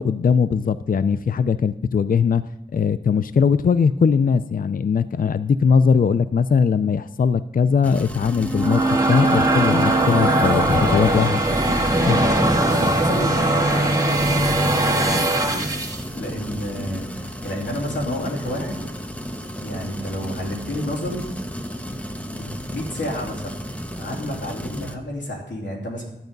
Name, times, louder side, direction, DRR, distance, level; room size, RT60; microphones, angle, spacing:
voice 1, 0.0-2.4 2.7-8.8 9.1-11.4 12.0-12.2, left 6 dB, 50° left, 14 dB, 0.4 m, -20 dB
sound 1, 7.8-24.9, equal, 5° left, 1.1 m, -33 dB
sound 2, 8.3-16.1, right 2 dB, 20° right, 1.6 m, -20 dB
voice 2, 10.4-15.7 16.1-18.8 19.6-21.3 22.3-23.7 23.9-26.0, left 1 dB, 75° left, 0 dB, 2.9 m, -30 dB
12.0 x 9.0 x 5.3 m, 0.93 s
cardioid pair, 55°, 19 cm